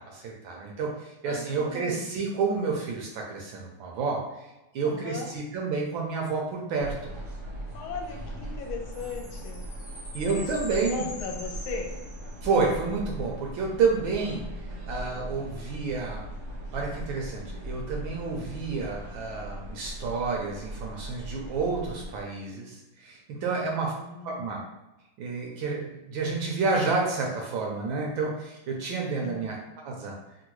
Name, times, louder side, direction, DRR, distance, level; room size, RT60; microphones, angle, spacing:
voice 1, 0.0-4.3 4.7-7.1 10.1-11.0 12.4-14.5 14.8-16.3 16.7-23.9 24.2-24.6 25.2-29.6 29.8-30.2, right 4 dB, 75° right, -1 dB, 1.2 m, -29 dB
voice 2, 1.2-2.1 4.8-5.3 7.7-9.6 10.3-11.9 23.5-24.5 29.2-29.5, left 4 dB, 75° left, 2 dB, 1.4 m, -38 dB
sound 1, 6.8-22.2, right 1 dB, 55° right, 0.9 m, -39 dB
Chime, 8.9-12.6, left 2 dB, 60° left, 0.5 m, -44 dB
3.6 x 2.2 x 2.9 m, 0.98 s
omnidirectional pair, 2.4 m